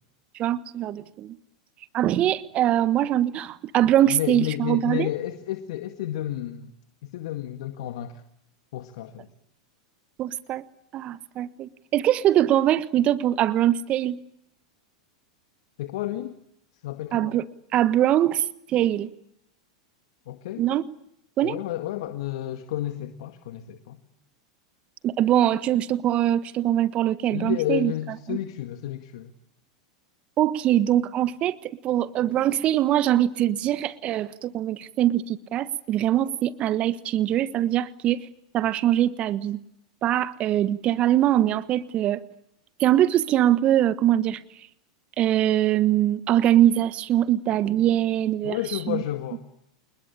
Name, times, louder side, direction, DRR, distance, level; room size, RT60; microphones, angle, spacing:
voice 1, 0.3-1.3 1.9-5.1 10.2-10.6 10.9-14.2 17.1-17.4 17.7-19.1 20.6-20.8 21.4-21.5 25.0-27.9 28.3-28.4 30.4-38.3 38.5-39.6 40.0-42.2 42.8-44.4 45.2-48.6 48.9-49.0, right 12 dB, 40° right, 16 dB, 1.3 m, -22 dB
voice 2, 4.1-6.7 7.0-8.2 8.7-9.3 15.8-16.4 16.8-17.3 20.3-20.7 21.4-24.0 27.3-29.3 48.4-49.4, left 13 dB, 65° left, 8 dB, 2.0 m, -31 dB
28.5 x 21.0 x 8.6 m, 0.78 s
hypercardioid pair, 100°, 3 cm